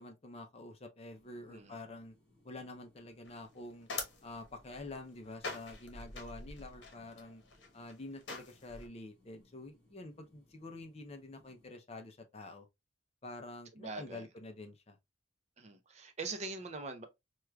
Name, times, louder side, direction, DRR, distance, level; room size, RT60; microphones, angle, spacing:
voice 1, 0.0-2.1 2.4-3.9 4.2-7.4 7.7-12.7 13.2-15.0, left 2 dB, 35° left, 0.5 m, -48 dB
sound 1, 1.0-11.7, left 1 dB, 5° left, 1.8 m, -69 dB
sound 2, 3.2-8.9, left 3 dB, 65° left, 1.0 m, -46 dB
voice 2, 13.8-14.2 15.6-17.0, right 3 dB, 35° right, 0.5 m, -42 dB
4.6 x 2.3 x 2.2 m
head